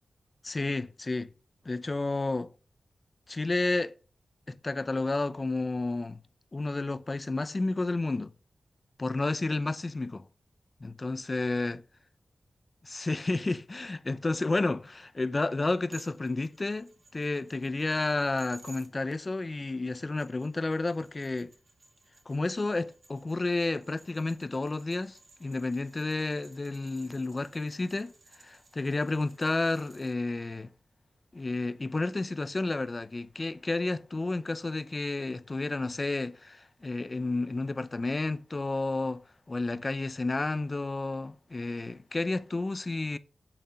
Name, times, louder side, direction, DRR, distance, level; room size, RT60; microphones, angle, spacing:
voice 1, 0.4-1.3 1.6-2.5 3.3-3.9 4.5-6.2 6.5-8.3 9.0-10.2 10.8-11.8 12.8-21.5 22.3-28.1 28.4-30.7 31.3-43.2, left 2 dB, 30° left, 0.7 m, -31 dB
sound 1, 15.9-18.9 20.0-30.1, right 2 dB, 55° right, 2.6 m, -57 dB
8.0 x 7.6 x 5.7 m
wide cardioid pair, 120°, 0 cm